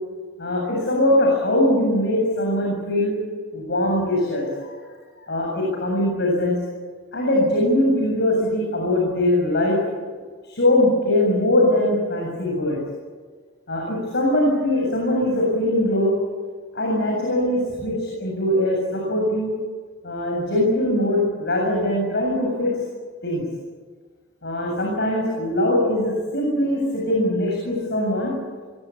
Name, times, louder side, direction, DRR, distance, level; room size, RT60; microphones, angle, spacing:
voice 1, 0.4-3.1 3.5-4.7 5.2-6.6 7.1-9.8 10.4-12.8 13.7-16.2 16.7-19.5 20.0-22.7 23.2-23.4 24.4-28.3, left 1 dB, 55° left, -1 dB, 7.7 m, -21 dB
26.0 x 23.0 x 8.7 m, 1.5 s
head